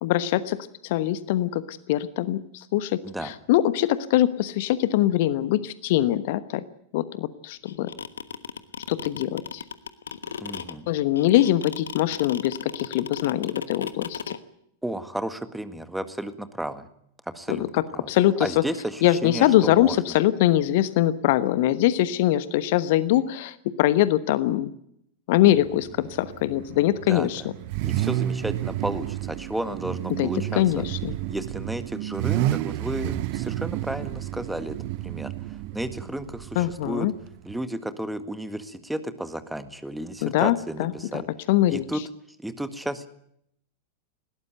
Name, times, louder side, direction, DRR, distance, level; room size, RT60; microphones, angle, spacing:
voice 1, 0.0-6.6 6.9-7.9 8.9-9.6 10.9-14.3 17.5-18.6 19.0-24.7 25.3-27.4 30.1-31.1 36.5-37.1 40.2-40.9 41.5-42.0, left 13 dB, 50° left, 15 dB, 1.1 m, -23 dB
sound 1, 7.7-14.4, left 7 dB, 70° left, 1.3 m, -35 dB
voice 2, 10.4-10.9 14.8-16.9 17.3-17.7 17.9-18.1 18.4-20.0 27.1-27.3 27.8-30.8 31.3-34.8 35.0-37.1 37.5-41.3 41.7-42.0 42.4-43.1, right 1 dB, 5° right, 11 dB, 1.7 m, -33 dB
Car / Idling / Accelerating revving vroom, 25.5-37.6, right 14 dB, 45° right, 0.8 m, -31 dB
20.5 x 17.5 x 9.1 m, 0.72 s
figure-of-eight pair, 90°, 0 cm